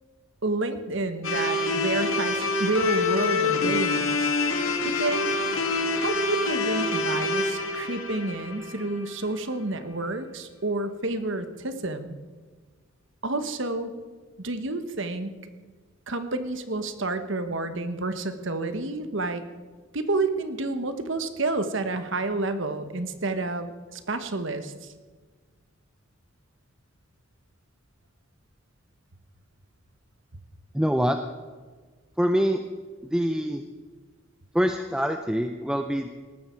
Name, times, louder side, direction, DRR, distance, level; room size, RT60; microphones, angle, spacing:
voice 1, 0.4-4.3 5.0-5.3 6.0-12.2 13.2-13.9 14.4-15.4 16.1-19.4 19.9-24.7, right 2 dB, 60° right, 9 dB, 1.3 m, -29 dB
sound 1, 1.2-9.4, left 3 dB, 70° left, 2.2 m, -26 dB
voice 2, 30.7-31.2 32.2-32.6 33.1-33.6 34.5-36.1, equal, 5° right, 6 dB, 0.5 m, -24 dB
19.0 x 13.5 x 4.5 m, 1.5 s
head